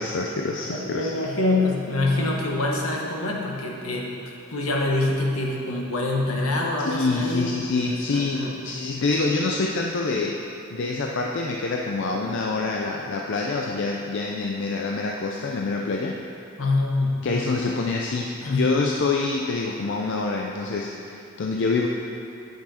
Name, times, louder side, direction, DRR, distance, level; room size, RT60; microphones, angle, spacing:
voice 1, 0.0-1.1 6.8-10.4 10.7-16.2 17.2-21.9, left 3 dB, 55° left, 0 dB, 0.4 m, -26 dB
voice 2, 0.7-4.2 4.5-7.5 7.8-8.5 16.6-17.3 18.4-18.7, left 2 dB, 75° left, -2 dB, 1.2 m, -25 dB
8.8 x 6.0 x 4.3 m, 2.8 s
head